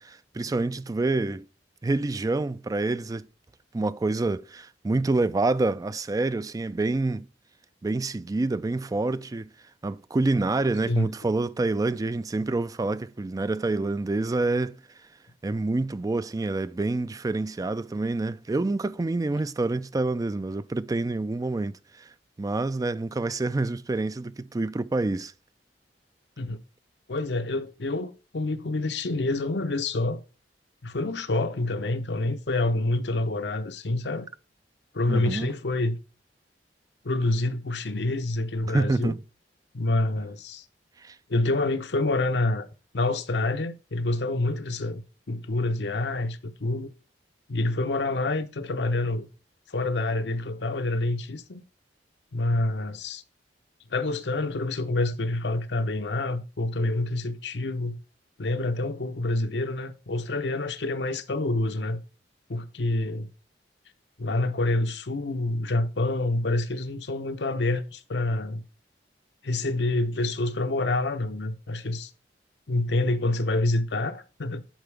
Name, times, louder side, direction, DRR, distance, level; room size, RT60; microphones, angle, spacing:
voice 1, 0.0-1.5 1.8-3.3 3.7-7.3 7.8-9.5 9.8-14.8 15.4-22.1 22.4-25.3 35.1-35.5 38.6-39.2 41.0-41.2, right 2 dB, 20° right, 0.3 m, -27 dB
voice 2, 27.1-30.2 30.8-34.3 34.9-36.0 37.0-39.1 39.7-40.6 41.3-42.7 42.9-46.9 47.5-49.3 49.7-51.6 52.3-53.2 53.9-58.0 58.4-62.0 62.5-63.3 64.2-68.6 69.4-72.1 72.7-74.6, left 2 dB, 70° left, 0.8 m, -27 dB
10.5 x 4.6 x 3.3 m
head